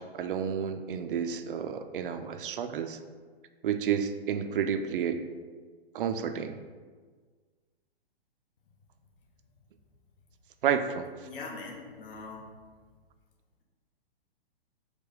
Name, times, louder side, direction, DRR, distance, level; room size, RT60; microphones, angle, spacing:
voice 1, 0.0-3.0 3.6-5.2 5.9-6.6 10.6-11.1, right 8 dB, 60° right, 8 dB, 0.4 m, -30 dB
voice 2, 11.2-12.5, left 3 dB, 60° left, -1 dB, 1.1 m, -42 dB
4.9 x 2.2 x 4.8 m, 1.5 s
hypercardioid pair, 120°, 31 cm